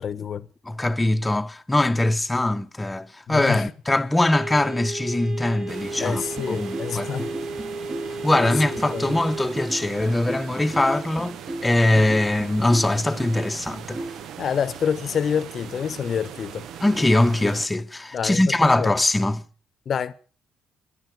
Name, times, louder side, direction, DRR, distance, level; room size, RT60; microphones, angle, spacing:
voice 1, 0.0-0.5 3.3-3.7 6.0-7.3 8.4-9.2 14.4-16.6 18.1-18.9 19.9-20.1, left 7 dB, 50° left, 0.9 m, -27 dB
voice 2, 0.6-7.1 8.1-14.0 16.8-19.4, left 1 dB, 15° left, 1.0 m, -22 dB
sound 1, 4.3-9.5, right 2 dB, 55° right, 3.4 m, -34 dB
sound 2, 5.7-17.7, right 9 dB, 70° right, 0.7 m, -40 dB
sound 3, 6.0-14.2, right 1 dB, 20° right, 4.6 m, -35 dB
27.5 x 10.0 x 4.8 m
supercardioid pair, 80°, 0 cm